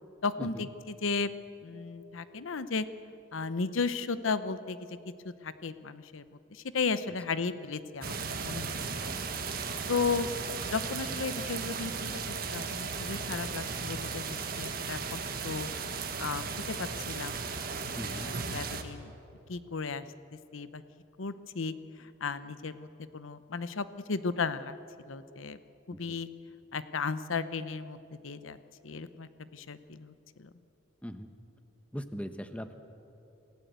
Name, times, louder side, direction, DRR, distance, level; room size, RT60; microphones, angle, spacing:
voice 1, 0.2-1.3 1.6-2.9 3.3-5.0 5.2-6.2 6.5-8.7 9.0-9.1 9.9-10.3 10.7-15.7 16.2-17.4 17.7-19.1 19.5-20.0 20.5-20.8 21.2-24.7 25.1-25.6 25.9-26.3 26.7-28.0 28.2-28.6 28.8-30.1 30.4-30.5, left 4 dB, 85° left, 13 dB, 0.8 m, -35 dB
sound 1, 8.0-18.8, right 5 dB, 50° right, 1.5 m, -36 dB
voice 2, 17.9-18.3 25.9-26.2 31.0-31.3 31.9-32.7, equal, 5° left, 8 dB, 1.0 m, -40 dB
27.0 x 16.5 x 8.1 m, 2.9 s
head